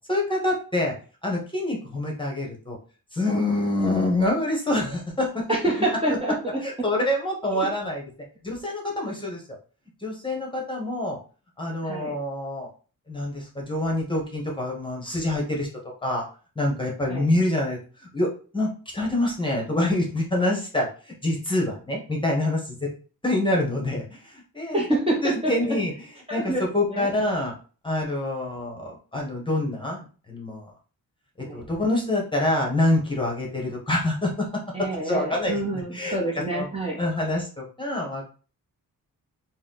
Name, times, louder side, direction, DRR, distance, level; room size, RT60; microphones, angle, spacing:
voice 1, 0.1-0.9 1.2-2.8 3.1-5.6 6.6-8.0 8.4-9.4 10.0-11.2 11.6-12.7 13.1-15.7 16.0-16.3 16.5-22.9 23.2-24.8 25.2-26.0 26.3-27.5 27.8-30.7 31.4-34.5 34.8-36.2 36.5-36.7 37.0-38.3, left 1 dB, 15° left, -1 dB, 1.0 m, -26 dB
voice 2, 5.5-6.6 7.5-7.7 11.8-12.1 17.1-17.3 24.7-25.5 26.3-27.1 31.4-31.6 34.7-37.0, right 1 dB, 15° right, -3 dB, 0.9 m, -27 dB
4.2 x 2.2 x 3.8 m, 0.38 s
wide cardioid pair, 135°, 35 cm